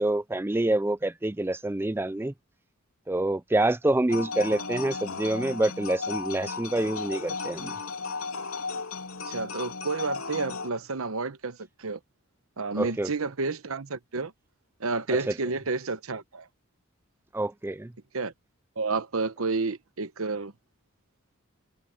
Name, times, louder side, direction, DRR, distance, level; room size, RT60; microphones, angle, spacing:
voice 1, 0.0-2.3 3.1-7.7 12.8-13.1 15.1-15.2 17.3-17.9, right 1 dB, 10° right, 0.4 m, -27 dB
sound 1, 4.1-10.7, left 4 dB, 85° left, 3.4 m, -35 dB
voice 2, 9.3-12.0 12.6-14.3 14.8-16.5 18.1-18.3 18.8-20.5, right 3 dB, 75° right, 1.0 m, -30 dB
head